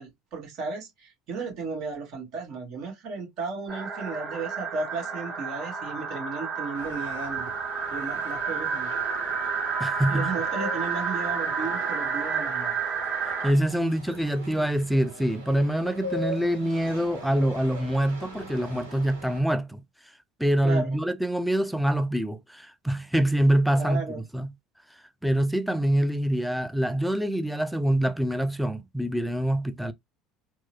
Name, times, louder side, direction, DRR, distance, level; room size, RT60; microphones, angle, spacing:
voice 1, 0.0-7.5 7.9-8.9 10.1-12.8 20.6-21.0 23.7-24.2, right 4 dB, 55° right, 1.6 m, -34 dB
sound 1, 3.7-13.5, right 5 dB, 40° right, 1.5 m, -30 dB
sound 2, 6.7-19.4, equal, 85° right, 1.1 m, -41 dB
voice 2, 9.8-10.3 13.4-19.8 20.4-24.5 25.2-29.9, right 1 dB, ahead, 0.6 m, -25 dB
4.5 x 2.1 x 2.9 m
figure-of-eight pair, 65°, 0 cm